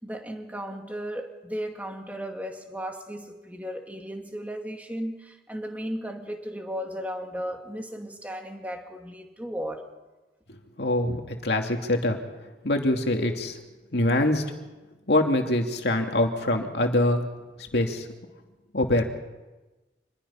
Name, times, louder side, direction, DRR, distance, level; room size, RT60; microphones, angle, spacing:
voice 1, 0.0-9.9, equal, 10° right, 3 dB, 2.3 m, -35 dB
voice 2, 10.8-12.2 12.6-13.6 13.9-14.4 15.1-17.2 17.7-18.1 18.7-19.0, left 1 dB, 65° left, 3 dB, 2.4 m, -24 dB
27.0 x 21.0 x 5.7 m, 1.1 s
head